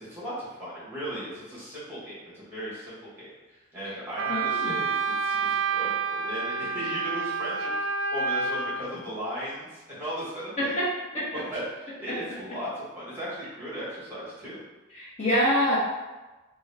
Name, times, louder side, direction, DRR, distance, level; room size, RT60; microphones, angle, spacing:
voice 1, 0.0-10.7 11.3-14.6, equal, 10° right, -10 dB, 1.3 m, -37 dB
Wind instrument woodwind instrument, 4.2-8.8, right 5 dB, 65° right, 0.3 m, -28 dB
voice 2, 4.3-4.8 10.6-10.9 11.1-11.3 12.1-12.2 14.9-15.8, equal, 35° left, -9 dB, 1.0 m, -25 dB
3.8 x 2.6 x 3.3 m, 1.1 s
head